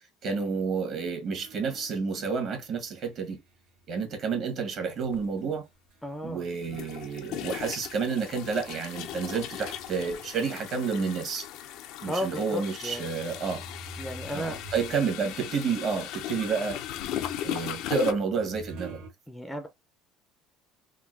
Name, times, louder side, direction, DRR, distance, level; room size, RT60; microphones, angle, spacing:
voice 1, 0.2-3.4 3.9-5.7 6.2-11.5 12.0-13.6 14.3-16.8 17.4-19.0, right 5 dB, 45° right, 1.3 m, -30 dB
sound 1, 1.3-6.3 6.6-11.2 11.8-11.9 12.7-19.1, right 1 dB, 85° right, 1.2 m, -49 dB
sound 2, 5.1-5.2 6.6-18.1, left 12 dB, 70° left, 0.4 m, -38 dB
voice 2, 6.0-6.5 12.1-13.0 14.0-14.6 19.3-19.7, equal, 5° left, 0.5 m, -34 dB
3.7 x 2.2 x 2.4 m
cardioid pair, 130°, 0 cm